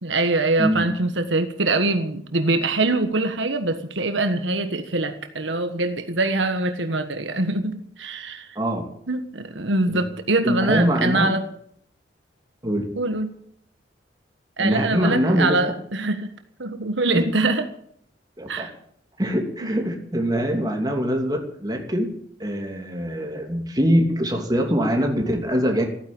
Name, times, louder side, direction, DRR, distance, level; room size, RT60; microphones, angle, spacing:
voice 1, 0.0-8.5 9.1-11.4 13.0-13.3 14.6-16.3 16.6-17.7 18.5-18.7 19.6-19.8, right 2 dB, 80° right, 8 dB, 1.5 m, -23 dB
voice 2, 10.4-11.3 12.6-12.9 14.6-15.6 17.1-17.2 18.4-18.7 19.2-22.1 22.4-25.9, equal, 20° right, 2 dB, 2.7 m, -23 dB
15.5 x 9.8 x 8.8 m, 0.67 s
head